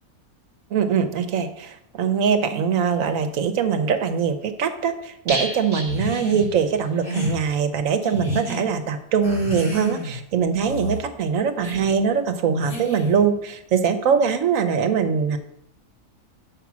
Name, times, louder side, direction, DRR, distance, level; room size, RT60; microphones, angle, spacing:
voice 1, 0.7-15.4, right 6 dB, 70° right, 8 dB, 1.2 m, -22 dB
sound 1, 5.3-7.1 7.3-7.4 7.8-7.9, right 1 dB, 20° right, 1.3 m, -33 dB
sound 2, 5.8-6.5 7.0-7.4 8.0-8.6 9.2-10.2 10.6-11.0 11.6-11.9 12.6-13.2, equal, 40° left, 2.4 m, -30 dB
7.1 x 5.4 x 6.1 m, 0.77 s
omnidirectional pair, 1.5 m